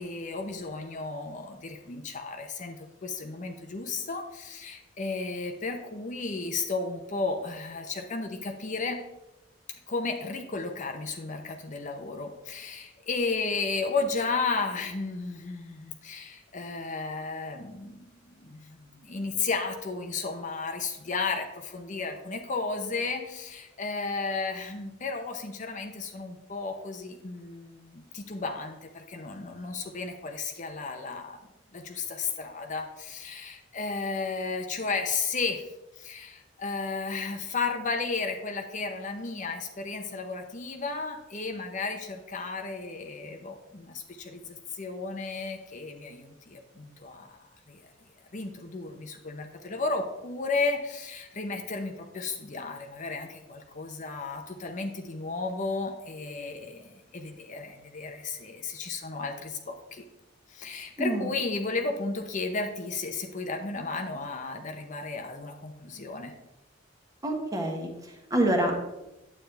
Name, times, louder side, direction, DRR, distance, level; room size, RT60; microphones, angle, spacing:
voice 1, 0.0-9.0 9.9-31.4 31.7-35.6 35.9-47.4 47.7-47.8 48.3-60.0 60.5-66.3, left 4 dB, 40° left, 5 dB, 0.8 m, -33 dB
voice 2, 67.2-68.7, right 1 dB, 20° right, 1 dB, 1.4 m, -27 dB
9.5 x 8.5 x 3.4 m, 0.96 s
head